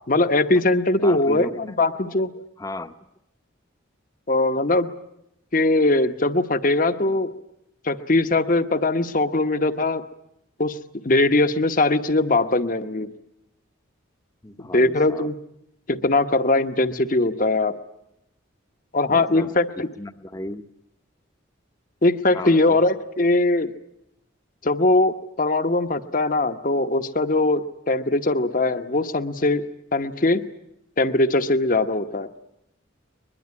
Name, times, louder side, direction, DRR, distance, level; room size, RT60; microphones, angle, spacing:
voice 1, 0.1-2.3 4.3-4.9 5.5-7.3 7.8-10.0 10.6-10.8 11.0-13.1 14.7-15.4 15.9-17.8 18.9-19.9 22.0-23.7 24.6-29.7 29.9-30.4 31.0-32.3, left 2 dB, 40° left, 10 dB, 1.0 m, -21 dB
voice 2, 1.0-1.6 2.0-2.2 2.6-2.9 14.4-15.3 19.1-20.6 22.3-22.8, left 1 dB, 15° left, 10 dB, 0.9 m, -35 dB
22.0 x 22.0 x 9.6 m, 0.83 s
head